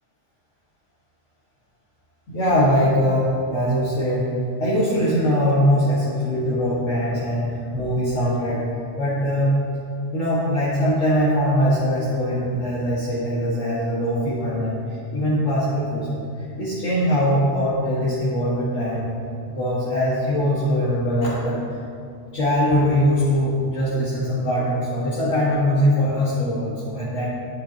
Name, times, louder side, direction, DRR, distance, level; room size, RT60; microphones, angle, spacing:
voice 1, 2.3-4.3 4.6-8.6 9.0-9.6 10.1-16.2 16.6-19.1 19.5-21.8 22.3-27.3, equal, 75° left, -9 dB, 2.0 m, -22 dB
11.0 x 11.0 x 2.9 m, 2.5 s
omnidirectional pair, 1.2 m